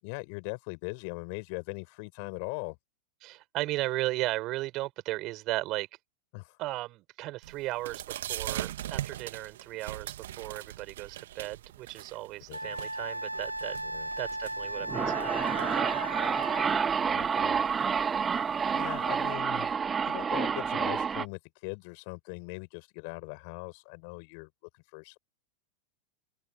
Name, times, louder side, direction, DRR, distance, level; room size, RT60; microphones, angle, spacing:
voice 1, 0.0-2.8 6.3-6.6 12.5-12.7 13.8-14.1 17.0-17.6 18.7-19.8 20.1-25.2, left 37 dB, 45° left, 6.2 m, -40 dB
voice 2, 3.2-5.9 6.6-13.8 14.2-15.9, right 18 dB, 40° right, 7.5 m, -36 dB
sound 1, 7.4-19.3, right 13 dB, 60° right, 2.2 m, -42 dB
Wind instrument woodwind instrument, 12.5-16.9, right 1 dB, 85° right, 0.9 m, -36 dB
sound 2, 14.6-21.3, right 6 dB, 20° right, 1.8 m, -29 dB
open air
figure-of-eight pair, 90°, 0 cm